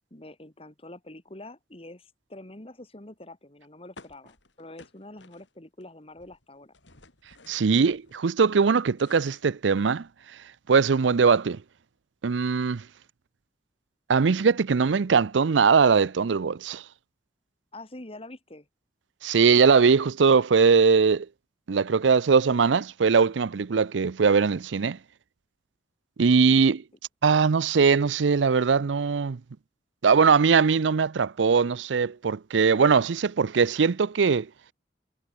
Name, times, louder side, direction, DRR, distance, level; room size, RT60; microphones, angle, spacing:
voice 1, 0.1-6.7 17.7-18.7, left 1 dB, 30° left, 2.4 m, -45 dB
sound 1, 4.0-5.8 6.1-8.2 8.6-10.2, left 3 dB, 85° left, 5.4 m, -54 dB
voice 2, 7.5-10.1 10.7-11.6 12.2-12.8 14.1-16.8 19.2-21.3 21.7-25.0 26.2-26.8 27.2-29.4 30.0-34.5, right 5 dB, 85° right, 0.5 m, -21 dB
head